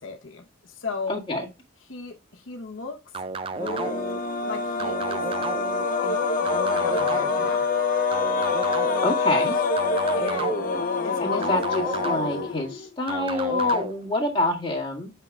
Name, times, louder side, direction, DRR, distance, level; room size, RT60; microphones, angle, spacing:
voice 1, 0.0-1.2 1.9-3.0 4.5-5.3 6.0-6.2 6.5-7.6 10.2-10.5 11.0-11.6, left 4 dB, 80° left, 4 dB, 1.0 m, -36 dB
voice 2, 1.1-1.5 9.0-9.6 11.2-15.1, left 2 dB, 25° left, -3 dB, 1.9 m, -26 dB
sound 1, 3.1-4.2 4.8-5.8 6.5-7.5 8.1-9.2 9.8-10.8 11.4-12.5 13.1-13.9, right 3 dB, 25° right, 0.4 m, -32 dB
sound 2, 3.5-12.9, left 4 dB, 45° left, 0.7 m, -26 dB
8.1 x 5.6 x 2.3 m, 0.28 s
head